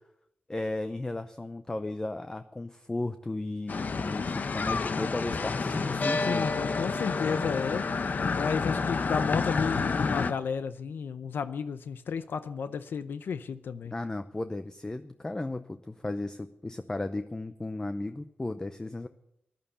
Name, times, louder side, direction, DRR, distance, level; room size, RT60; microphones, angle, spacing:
voice 1, 0.5-6.5 13.9-19.1, left 2 dB, 20° left, 9 dB, 0.6 m, -35 dB
sound 1, 3.7-10.3, left 4 dB, 55° left, 0.8 m, -29 dB
voice 2, 6.2-8.0 8.3-13.9, left 6 dB, 90° left, 12 dB, 0.6 m, -32 dB
14.5 x 11.5 x 6.9 m, 0.80 s
wide cardioid pair, 105°, 3 cm